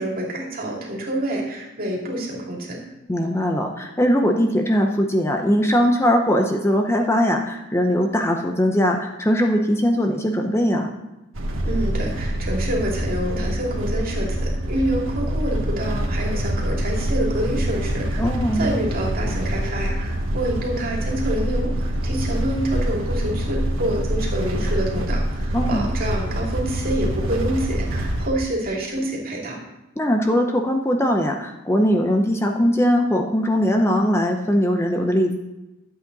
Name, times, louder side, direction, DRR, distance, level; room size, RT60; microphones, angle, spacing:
voice 1, 0.0-2.8 11.6-18.2 18.5-29.6, right 1 dB, 45° right, -2 dB, 2.6 m, -27 dB
voice 2, 3.1-10.9 18.2-18.7 25.5-25.9 30.0-35.3, equal, 15° left, 3 dB, 0.7 m, -20 dB
sound 1, 11.3-28.3, right 1 dB, 85° right, 1.5 m, -25 dB
11.5 x 8.1 x 4.0 m, 1.0 s
head